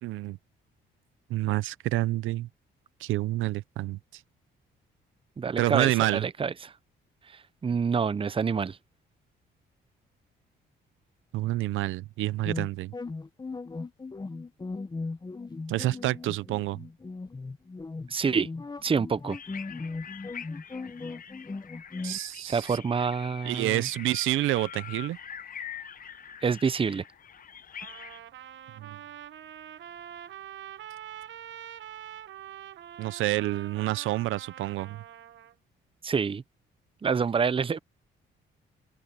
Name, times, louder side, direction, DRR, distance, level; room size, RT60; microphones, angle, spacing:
voice 1, 0.0-0.4 1.3-2.5 3.0-4.2 5.6-6.2 11.3-12.9 15.7-16.8 22.0-22.8 23.4-25.2 28.8-29.0 33.0-35.0, right 16 dB, 90° right, 0.7 m, -28 dB
voice 2, 5.4-6.7 7.3-8.8 18.1-18.5 18.8-19.4 22.4-23.9 26.4-27.0 36.0-36.4 37.0-37.8, right 6 dB, 25° right, 0.7 m, -27 dB
sound 1, 12.4-22.2, left 3 dB, 20° left, 1.1 m, -38 dB
sound 2, 19.3-28.2, left 8 dB, 45° left, 1.0 m, -44 dB
Trumpet, 27.8-35.5, right 10 dB, 70° right, 1.2 m, -45 dB
cardioid pair, 90°, 20 cm